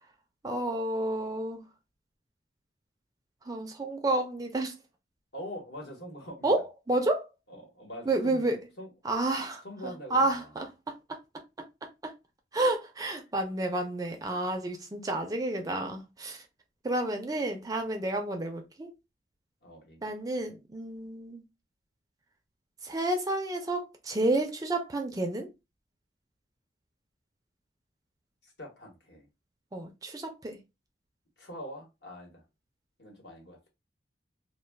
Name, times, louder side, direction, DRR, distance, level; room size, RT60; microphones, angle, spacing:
voice 1, 0.4-1.6 3.5-4.7 6.4-7.3 8.1-8.6 9.0-10.7 12.0-12.1 12.5-16.4 16.8-18.9 20.0-21.4 22.8-25.5 29.7-30.6, right 2 dB, 20° right, 0.4 m, -30 dB
voice 2, 5.3-6.5 7.5-8.9 9.6-10.5 19.6-20.1 28.4-29.3 31.4-32.5 33.0-33.6, equal, 60° left, 1.1 m, -44 dB
2.2 x 2.2 x 3.3 m
head